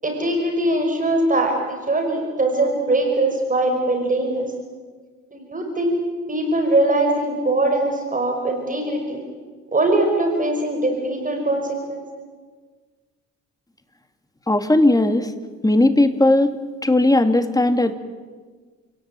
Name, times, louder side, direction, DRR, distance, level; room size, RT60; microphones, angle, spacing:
voice 1, 0.0-4.5 5.3-6.0 6.3-9.2 9.7-12.2, right 2 dB, 25° right, 3 dB, 5.6 m, -21 dB
voice 2, 14.5-15.3 15.6-16.5 16.8-17.9, left 1 dB, 10° left, 8 dB, 2.4 m, -17 dB
29.5 x 18.0 x 9.1 m, 1.4 s
cardioid pair, 90°, 30 cm